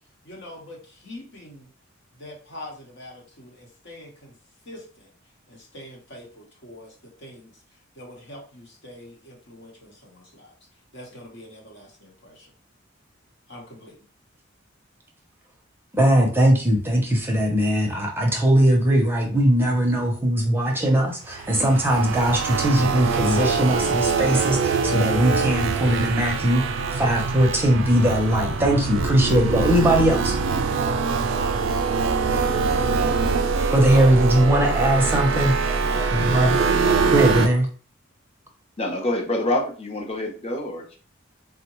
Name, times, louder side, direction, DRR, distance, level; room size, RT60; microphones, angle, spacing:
voice 1, 0.2-1.7 2.2-4.4 4.6-5.1 5.5-7.6 7.9-10.5 10.9-12.5 13.5-14.0, left 1 dB, 65° left, 0 dB, 1.0 m, -44 dB
voice 2, 15.9-30.4 33.7-35.6 36.1-36.6 37.1-37.7, right 1 dB, 10° right, 0 dB, 0.6 m, -20 dB
sound 1, 21.3-37.5, right 4 dB, 65° right, 0.4 m, -23 dB
voice 3, 38.8-41.0, left 1 dB, 30° left, 1 dB, 0.7 m, -26 dB
3.7 x 2.1 x 2.9 m, 0.39 s
head